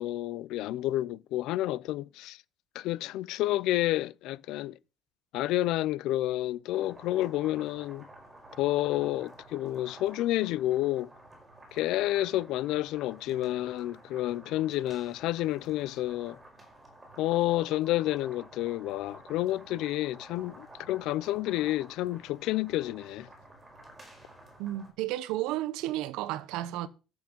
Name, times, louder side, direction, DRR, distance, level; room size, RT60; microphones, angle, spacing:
voice 1, 0.0-2.4 2.7-4.8 5.3-8.1 8.6-11.1 11.7-16.4 17.2-23.3, left 15 dB, 70° left, 0.5 m, -30 dB
sound 1, 6.7-24.9, right 1 dB, 10° right, 5.0 m, -52 dB
voice 2, 24.6-26.9, right 15 dB, 85° right, 1.1 m, -32 dB
13.5 x 7.9 x 5.3 m
cardioid pair, 170°, 0 cm